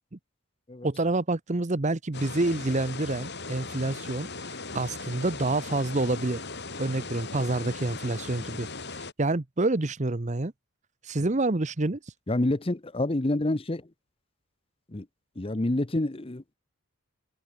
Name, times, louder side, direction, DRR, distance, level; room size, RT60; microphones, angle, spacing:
voice 1, 0.8-6.4 6.8-10.5 11.0-12.1, right 2 dB, 30° right, 0.8 m, -28 dB
sound 1, 2.1-9.1, left 3 dB, 50° left, 6.0 m, -38 dB
voice 2, 12.3-13.8 14.9-15.1 15.4-16.5, left 1 dB, 25° left, 0.7 m, -28 dB
head